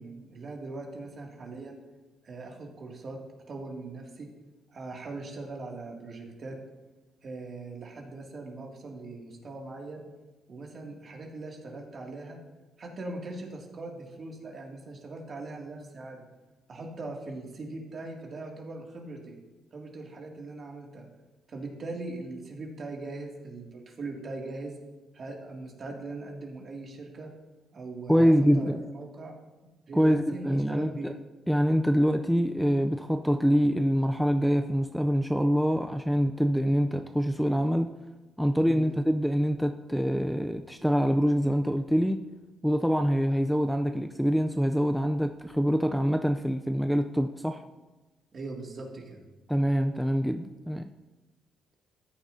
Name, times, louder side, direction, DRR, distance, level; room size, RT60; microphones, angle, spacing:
voice 1, 0.0-1.8 2.2-3.2 3.5-4.3 4.7-6.6 7.2-10.0 10.5-12.4 12.8-16.2 16.7-19.4 19.7-21.1 21.5-24.7 25.1-27.3 27.7-29.3 29.9-31.1 38.7-38.9 48.3-49.2, right 2 dB, 45° right, 0 dB, 2.4 m, -40 dB
voice 2, 28.1-28.8 29.9-31.1 31.5-37.9 38.4-42.2 42.6-47.6 49.5-50.9, equal, ahead, 6 dB, 0.5 m, -25 dB
14.0 x 9.3 x 2.8 m, 1.2 s
cardioid pair, 90°, 0 cm